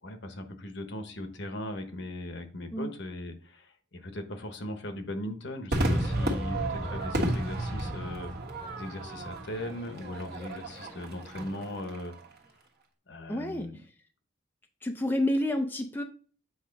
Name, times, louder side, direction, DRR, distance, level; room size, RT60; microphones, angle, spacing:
voice 1, 0.0-8.3 8.8-12.1 13.1-13.8, left 1 dB, 60° left, 7 dB, 1.0 m, -39 dB
Crowd / Fireworks, 5.7-12.3, right 1 dB, 50° right, 1.5 m, -32 dB
voice 2, 13.3-13.7 14.8-16.0, left 1 dB, 10° left, 4 dB, 0.5 m, -29 dB
8.1 x 3.0 x 5.2 m, 0.41 s
head